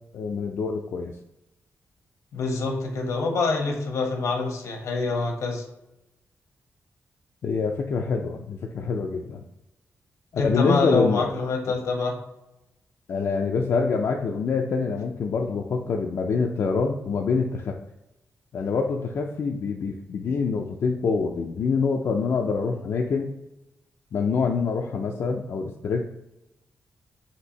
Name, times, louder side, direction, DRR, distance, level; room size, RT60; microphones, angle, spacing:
voice 1, 0.1-1.1 7.4-9.4 10.3-11.3 11.7-11.8 13.1-17.8 18.5-23.3 24.1-26.1, left 5 dB, 65° left, 1 dB, 0.4 m, -26 dB
voice 2, 2.3-5.6 10.4-12.2, left 3 dB, 85° left, 2 dB, 1.0 m, -26 dB
4.4 x 2.7 x 3.9 m, 0.91 s
cardioid pair, 100°, 5 cm